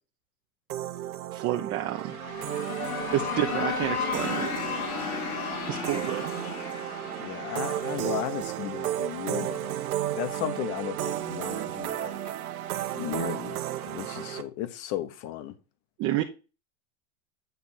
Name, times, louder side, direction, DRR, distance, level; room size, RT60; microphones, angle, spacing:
sound 1, 0.7-14.4, right 12 dB, 80° right, 1.1 m, -33 dB
voice 1, 1.3-2.1 3.1-4.5 5.7-6.3 16.0-16.2, right 13 dB, 35° right, 0.8 m, -29 dB
sound 2, 2.0-8.8, left 7 dB, 80° left, 2.2 m, -34 dB
voice 2, 5.6-6.1 7.2-9.8 10.1-12.2 12.9-15.6, left 12 dB, 40° left, 1.1 m, -35 dB
9.5 x 3.5 x 4.2 m
supercardioid pair, 135°, 43 cm